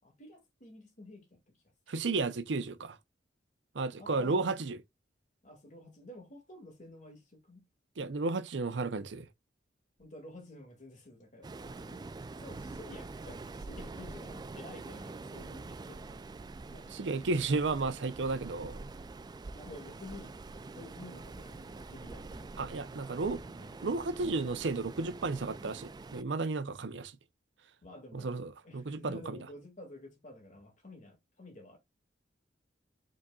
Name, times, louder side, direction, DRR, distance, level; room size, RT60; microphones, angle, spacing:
voice 1, 0.0-1.4 4.0-4.6 5.4-7.7 10.0-12.1 12.4-16.2 16.7-16.9 19.5-20.4 20.8-22.5 23.4-23.8 27.8-28.3 28.6-31.8, left 1 dB, 45° left, 2.1 m, -51 dB
voice 2, 1.9-3.0 3.7-4.8 8.0-9.3 16.9-18.8 22.6-23.4 23.8-27.1 28.1-29.4, right 3 dB, 75° right, 0.6 m, -33 dB
Waves surf, 11.4-26.2, right 3 dB, 25° right, 0.3 m, -45 dB
5.1 x 4.0 x 2.3 m
head